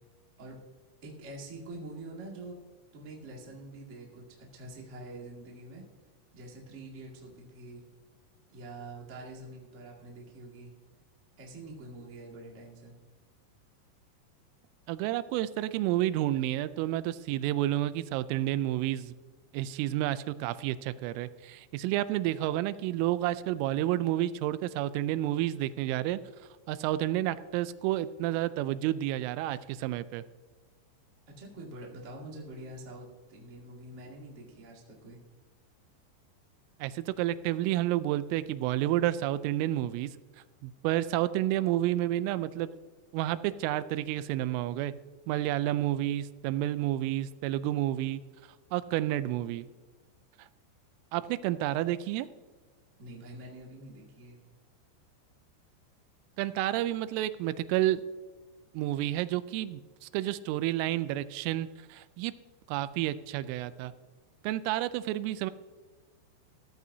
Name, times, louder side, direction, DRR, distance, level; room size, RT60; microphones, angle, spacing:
voice 1, 1.0-2.6 2.9-4.2 4.5-5.8 6.3-7.8 8.5-10.7 11.4-12.9 31.3-35.2 53.0-54.4, right 2 dB, 60° right, -3 dB, 0.7 m, -45 dB
voice 2, 14.9-19.1 19.5-26.2 26.7-30.2 36.8-40.1 40.6-42.7 43.1-44.9 45.3-48.2 48.7-49.7 51.1-52.3 56.4-58.0 58.7-62.3 62.7-63.9 64.4-65.5, right 14 dB, 90° right, 14 dB, 3.1 m, -30 dB
17.0 x 13.5 x 2.8 m, 1.4 s
omnidirectional pair, 5.6 m